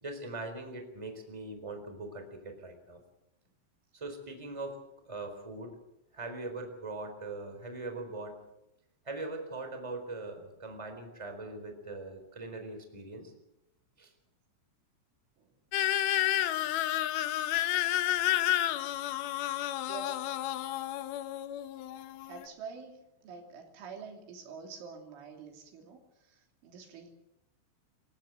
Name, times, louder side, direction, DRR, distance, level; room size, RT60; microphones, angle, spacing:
voice 1, 0.0-3.0 3.9-5.8 6.1-8.4 9.0-13.3 14.0-14.1, right 2 dB, 5° right, 6 dB, 3.4 m, -41 dB
sound 1, 15.7-22.5, left 13 dB, 75° left, 2.3 m, -31 dB
voice 2, 19.9-20.3 22.2-27.1, right 5 dB, 75° right, 3 dB, 5.4 m, -47 dB
27.5 x 15.5 x 8.0 m, 0.87 s
omnidirectional pair, 5.6 m